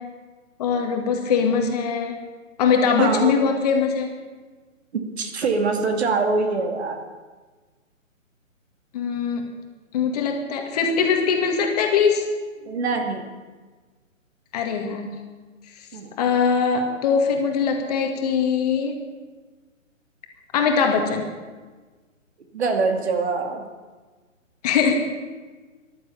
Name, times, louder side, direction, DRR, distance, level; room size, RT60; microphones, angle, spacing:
voice 1, 0.6-2.2 2.6-4.1 8.9-9.5 9.9-12.2 14.5-15.2 16.2-19.0 20.5-21.2 24.6-24.9, left 6 dB, 30° left, 3 dB, 1.9 m, -21 dB
voice 2, 3.0-3.3 4.9-7.0 12.6-13.3 15.9-16.2 22.5-23.7, right 4 dB, 50° right, 4 dB, 2.4 m, -24 dB
15.0 x 11.5 x 7.1 m, 1.4 s
figure-of-eight pair, 145°, 40 cm